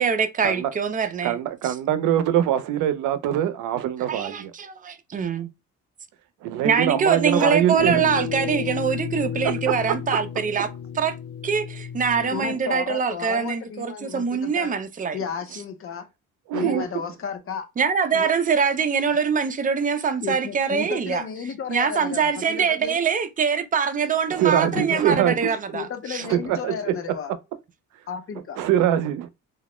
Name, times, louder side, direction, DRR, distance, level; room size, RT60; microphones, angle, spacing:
voice 1, 0.0-1.4 1.6-1.7 4.1-5.5 6.6-10.7 11.0-11.1 11.4-15.2 16.6-16.8 17.8-21.2 21.7-26.2, right 6 dB, 30° right, 0.4 m, -24 dB
voice 2, 1.2-4.5 6.4-8.1 16.5-16.9 24.3-25.5 26.3-26.9 28.6-29.3, right 11 dB, 85° right, 0.5 m, -23 dB
sound 1, 7.8-12.8, left 8 dB, 90° left, 0.5 m, -32 dB
voice 3, 12.3-14.7 15.1-16.1 16.5-17.6 18.1-18.3 20.2-23.0 24.8-27.3 28.1-28.6, left 6 dB, 45° left, 0.6 m, -33 dB
2.3 x 2.0 x 2.9 m
cardioid pair, 90°, 30 cm